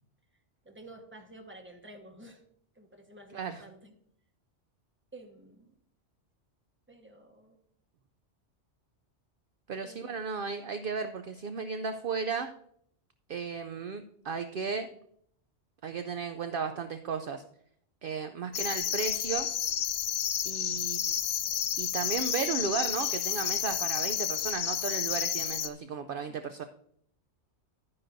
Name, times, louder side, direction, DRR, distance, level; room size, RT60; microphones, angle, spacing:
voice 1, 0.6-2.4 2.7-4.0 5.1-5.7 6.9-7.6 9.8-10.2 26.3-26.4, right 1 dB, 10° right, 3 dB, 1.2 m, -51 dB
voice 2, 3.3-3.6 9.7-12.5 13.3-14.9 15.8-17.4 18.0-19.5 20.4-21.2 21.8-26.6, right 5 dB, 60° right, 8 dB, 0.7 m, -34 dB
sound 1, 18.5-25.7, left 9 dB, 85° left, 1.0 m, -31 dB
11.5 x 9.6 x 2.6 m, 0.67 s
omnidirectional pair, 1.2 m